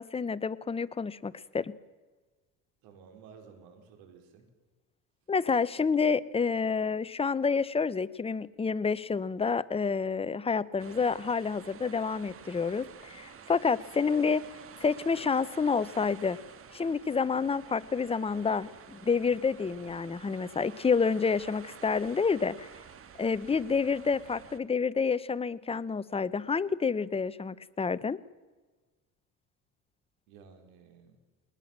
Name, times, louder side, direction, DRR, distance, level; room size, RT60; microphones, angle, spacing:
voice 1, 0.0-1.8 5.3-14.4 14.8-16.4 16.7-22.7 23.2-28.2, left 5 dB, 15° left, 15 dB, 0.8 m, -29 dB
voice 2, 2.8-4.5 30.3-31.2, right 6 dB, 85° right, 5 dB, 4.8 m, -54 dB
sound 1, 10.8-24.6, right 7 dB, 40° right, 1.6 m, -50 dB
20.5 x 20.0 x 7.4 m, 1.3 s
cardioid pair, 110°, 35 cm